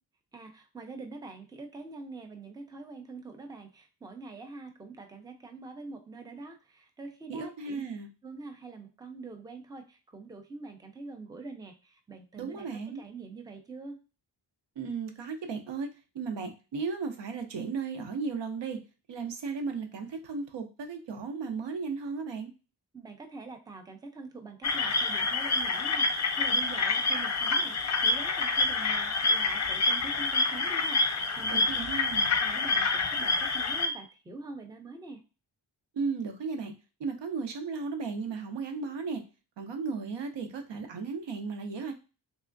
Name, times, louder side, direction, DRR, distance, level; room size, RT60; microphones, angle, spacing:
voice 1, 0.3-7.8 8.2-12.7 12.9-14.0 22.9-31.6 32.0-32.1 32.4-35.2, right 3 dB, 10° right, 5 dB, 0.6 m, -45 dB
voice 2, 7.3-8.1 12.4-13.0 14.8-15.9 16.1-18.8 19.1-22.5 31.5-32.3 36.0-36.7 37.0-39.2 39.6-41.9, right 4 dB, 70° right, 6 dB, 0.9 m, -35 dB
sound 1, 24.6-33.9, left 3 dB, 40° left, 0.6 m, -27 dB
3.6 x 3.3 x 2.6 m, 0.32 s
wide cardioid pair, 105°, 44 cm